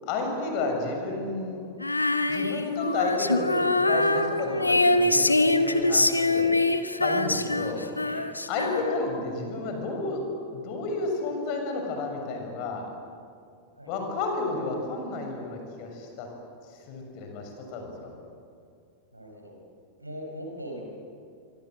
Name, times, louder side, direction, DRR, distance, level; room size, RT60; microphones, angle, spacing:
voice 1, 0.0-1.6 2.3-6.5 7.0-7.8 8.5-10.2 10.5-12.8 13.8-16.3 16.7-18.1, left 3 dB, 45° left, 3 dB, 6.8 m, -31 dB
Female singing, 1.8-9.2, left 2 dB, 85° left, 1.1 m, -24 dB
voice 2, 7.6-8.2 8.6-8.8 13.8-14.1 19.1-19.6 20.0-20.8, equal, 85° right, 2 dB, 5.2 m, -41 dB
26.0 x 25.5 x 7.9 m, 2.3 s
figure-of-eight pair, 90°, 0 cm